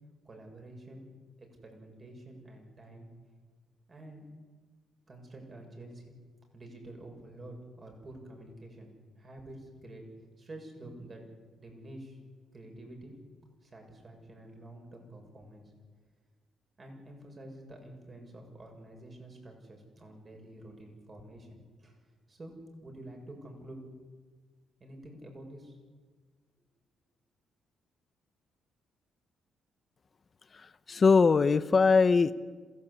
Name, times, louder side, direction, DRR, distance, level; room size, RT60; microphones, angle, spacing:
voice 1, 0.3-1.1 1.4-3.1 3.9-4.2 5.1-6.1 6.5-10.0 10.4-11.2 11.6-12.2 12.5-13.1 13.6-15.7 16.8-22.0 22.3-22.5 22.8-23.8 24.8-25.8, right 1 dB, 35° right, 2 dB, 7.0 m, -48 dB
voice 2, 30.5-32.3, left 4 dB, 35° left, 12 dB, 0.8 m, -22 dB
27.0 x 17.0 x 8.5 m, 1.5 s
cardioid pair, 90°, 0 cm